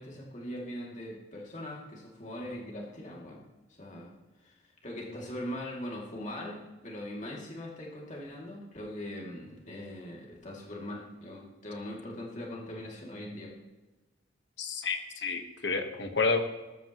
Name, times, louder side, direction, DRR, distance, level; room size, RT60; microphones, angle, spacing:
voice 1, 0.0-3.5 3.8-4.1 4.4-4.5 4.8-13.5, left 1 dB, 40° left, -2 dB, 2.6 m, -41 dB
voice 2, 14.6-16.4, left 4 dB, 65° left, 6 dB, 1.4 m, -30 dB
20.0 x 13.5 x 3.1 m, 1.2 s
head